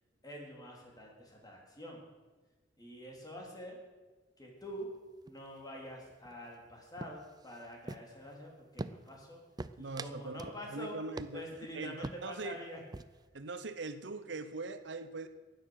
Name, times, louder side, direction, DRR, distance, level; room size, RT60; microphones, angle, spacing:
voice 1, 0.2-2.0 2.8-3.8 4.4-4.9 5.2-9.4 9.8-11.0 11.3-12.8, equal, 20° left, -1 dB, 3.3 m, -46 dB
sound 1, 4.6-5.0 5.3-5.6 5.9-6.7 7.0-8.3 8.8-9.3 9.6-10.6 10.9-11.0 11.2-11.6 12.0-12.5 12.8-13.3, right 2 dB, 20° right, 0.4 m, -44 dB
voice 2, 9.8-11.4 11.7-12.6 13.3-15.3, right 3 dB, 75° right, 11 dB, 0.8 m, -41 dB
16.0 x 9.6 x 6.5 m, 1.3 s
head